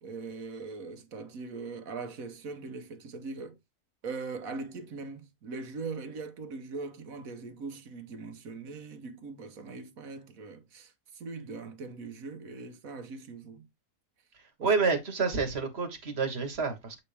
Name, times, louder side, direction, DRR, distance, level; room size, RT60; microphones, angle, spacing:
voice 1, 0.0-3.6 4.0-13.7 14.6-14.7, right 4 dB, 80° right, 1.5 m, -41 dB
voice 2, 14.6-17.0, right 4 dB, 50° right, 1.7 m, -28 dB
8.0 x 4.3 x 3.3 m
omnidirectional pair, 1.5 m